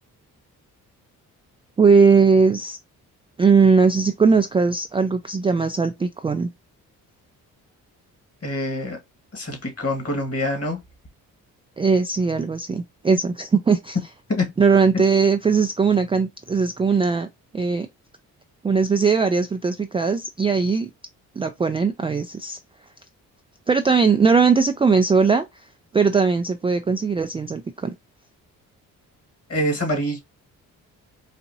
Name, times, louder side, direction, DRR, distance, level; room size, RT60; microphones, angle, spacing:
voice 1, 1.8-2.8 3.4-6.5 11.8-14.0 14.6-17.3 17.5-17.9 18.6-20.9 21.4-22.6 23.7-25.5 25.9-27.9, right 5 dB, 15° right, 0.3 m, -19 dB
voice 2, 8.4-9.0 9.3-10.8 14.3-14.5 29.5-30.2, left 1 dB, 35° left, 1.7 m, -25 dB
4.0 x 2.5 x 2.7 m
supercardioid pair, 50°, 40 cm